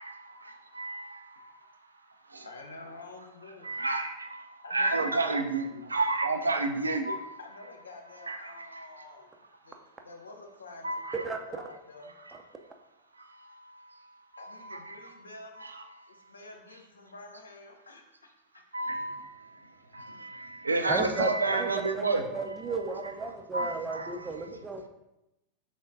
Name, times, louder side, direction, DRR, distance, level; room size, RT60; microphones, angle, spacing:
voice 1, 0.0-1.7 2.3-2.5 3.6-7.4 8.3-9.1 10.8-11.3 12.3-12.4 13.2-15.1 15.6-16.2 18.7-22.6 23.5-24.5, right 2 dB, 85° right, 5 dB, 0.3 m, -32 dB
voice 2, 2.4-3.8 4.6-5.1 7.4-9.3 9.6-9.8 10.0-12.2 14.4-15.6 16.1-18.1, left 3 dB, 80° left, 3 dB, 0.5 m, -48 dB
voice 3, 20.9-22.1 22.3-24.9, right 3 dB, 20° right, 4 dB, 0.4 m, -34 dB
3.9 x 3.5 x 2.5 m, 0.92 s
figure-of-eight pair, 90°, 0 cm